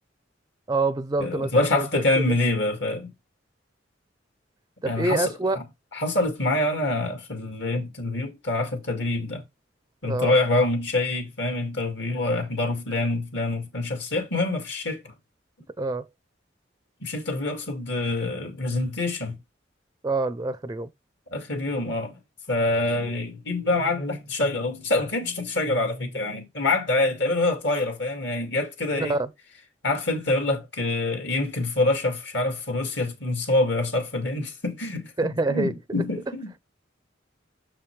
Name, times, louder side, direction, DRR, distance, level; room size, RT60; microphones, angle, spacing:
voice 1, 0.7-2.4 4.8-5.6 10.0-10.4 15.8-16.1 20.0-20.9 28.9-29.3 35.2-35.7, right 2 dB, 20° right, 0.4 m, -26 dB
voice 2, 1.2-3.1 4.8-5.6 5.9-9.4 10.0-15.0 17.0-19.4 21.3-22.2 22.5-29.2 29.8-36.6, left 2 dB, 65° left, 2.1 m, -26 dB
6.8 x 5.7 x 3.2 m
head